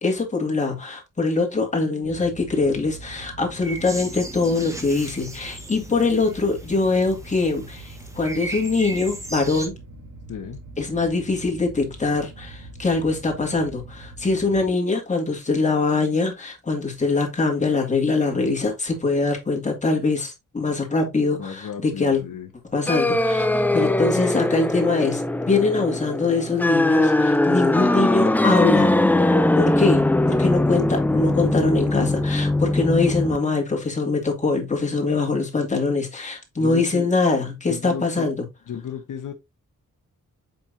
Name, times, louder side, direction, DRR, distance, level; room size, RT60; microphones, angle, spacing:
voice 1, 0.0-9.8 10.8-22.2 22.7-28.9 29.5-38.3, left 3 dB, 25° left, 2.1 m, -23 dB
sound 1, 2.0-14.7, right 2 dB, 70° right, 2.9 m, -42 dB
sound 2, 3.6-9.7, right 2 dB, 10° right, 1.2 m, -37 dB
voice 2, 10.3-10.6 21.4-22.5 36.6-37.1 37.7-38.3 38.7-39.3, left 8 dB, 75° left, 1.1 m, -33 dB
sound 3, 22.9-33.4, left 1 dB, 5° left, 0.4 m, -21 dB
7.5 x 5.3 x 2.7 m
wide cardioid pair, 165°, 31 cm